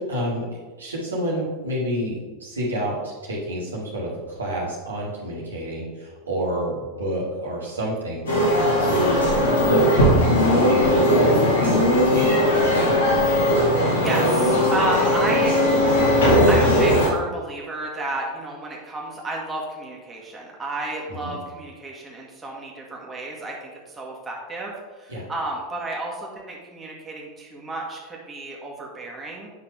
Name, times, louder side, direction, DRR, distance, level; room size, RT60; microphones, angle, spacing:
voice 1, 0.1-0.5 0.8-8.5 8.8-9.2 9.6-10.2 10.5-12.5 21.2-21.3 25.1-25.3, equal, 80° right, -5 dB, 2.0 m, -29 dB
sound 1, 8.3-17.1, equal, 75° left, 2.1 m, -18 dB
voice 2, 14.0-15.8 16.1-29.5, right 2 dB, 15° right, -2 dB, 1.7 m, -32 dB
8.9 x 5.6 x 3.4 m, 1.3 s
figure-of-eight pair, 85°, 0 cm